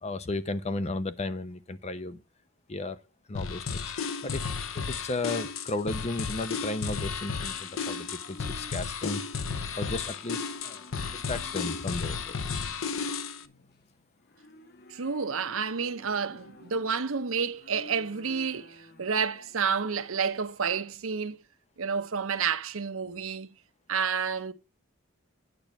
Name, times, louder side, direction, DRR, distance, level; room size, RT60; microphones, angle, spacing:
voice 1, 0.0-2.2 2.7-3.0 3.3-3.8 4.2-4.4 4.7-9.2 9.8-10.8 11.1-12.4, left 2 dB, 30° left, 0.7 m, -34 dB
sound 1, 3.3-13.4, left 5 dB, 80° left, 0.7 m, -33 dB
Livestock farm animals working animals, 5.9-20.6, left 2 dB, 50° left, 1.1 m, -53 dB
voice 2, 14.9-21.4 21.8-23.6 23.9-24.5, right 6 dB, 85° right, 0.8 m, -30 dB
9.1 x 6.0 x 5.2 m
head